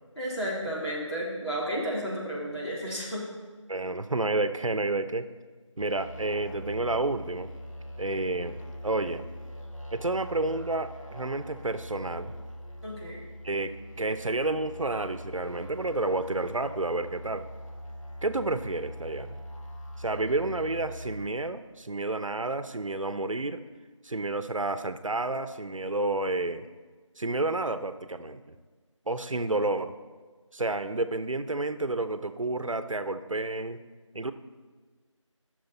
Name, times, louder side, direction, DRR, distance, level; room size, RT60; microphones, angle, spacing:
voice 1, 0.1-3.2 12.8-13.2, equal, 55° left, -6 dB, 3.2 m, -32 dB
voice 2, 3.7-5.3 5.8-7.5 8.0-8.6 8.8-9.3 9.9-12.3 13.4-17.4 18.2-19.4 20.0-23.6 24.0-26.7 27.2-28.4 29.1-29.9 30.5-33.8 34.1-34.3, right 2 dB, 80° right, 11 dB, 0.7 m, -30 dB
sound 1, 5.8-21.3, equal, 85° left, 1.7 m, -42 dB
13.0 x 6.3 x 4.0 m, 1.4 s
figure-of-eight pair, 180°, 17 cm